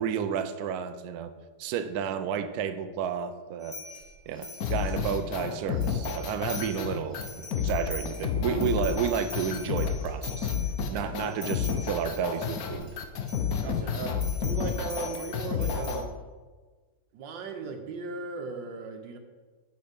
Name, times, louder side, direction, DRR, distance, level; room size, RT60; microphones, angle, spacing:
voice 1, 0.0-1.3 1.6-3.8 4.3-10.5 10.9-12.9, right 7 dB, 70° right, 9 dB, 1.0 m, -31 dB
sound 1, 3.6-5.4 5.8-6.8 7.1-12.9 13.2-13.8 14.2-15.9, left 3 dB, 30° left, 3.0 m, -44 dB
sound 2, 4.6-16.0, left 7 dB, 60° left, 1.1 m, -30 dB
voice 2, 10.9-11.3 13.6-16.1 17.1-19.2, right 4 dB, 85° right, 5 dB, 1.6 m, -37 dB
8.9 x 5.2 x 5.1 m, 1.4 s
omnidirectional pair, 1.9 m